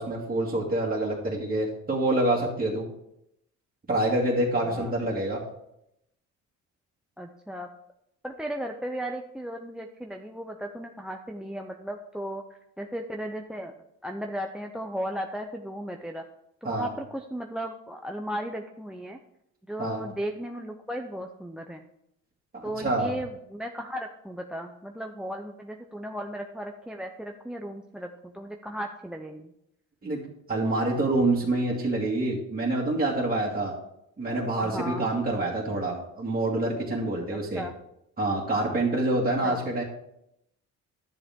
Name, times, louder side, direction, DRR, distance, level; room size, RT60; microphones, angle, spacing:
voice 1, 0.0-2.9 3.9-5.4 16.6-16.9 19.8-20.0 22.5-23.1 30.0-30.2 30.5-33.7 34.2-37.6 38.2-39.8, right 2 dB, 30° right, -4 dB, 2.3 m, -26 dB
voice 2, 7.2-7.7 8.2-12.4 12.8-13.7 14.0-16.2 16.6-19.2 19.7-21.8 22.6-29.5 34.6-35.1 37.3-37.7 39.4-39.6, equal, 5° right, 4 dB, 0.6 m, -36 dB
10.5 x 7.1 x 3.6 m, 0.79 s
cardioid pair, 90°, 30 cm